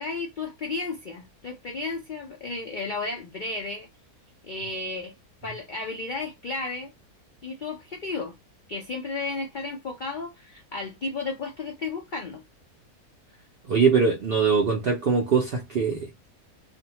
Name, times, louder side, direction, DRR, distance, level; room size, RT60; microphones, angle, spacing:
voice 1, 0.0-3.9 4.4-5.1 5.4-6.9 7.4-8.3 8.7-12.4, left 3 dB, 85° left, 0.4 m, -33 dB
voice 2, 13.7-16.0, right 5 dB, 70° right, 0.5 m, -22 dB
2.6 x 2.1 x 2.9 m
omnidirectional pair, 1.6 m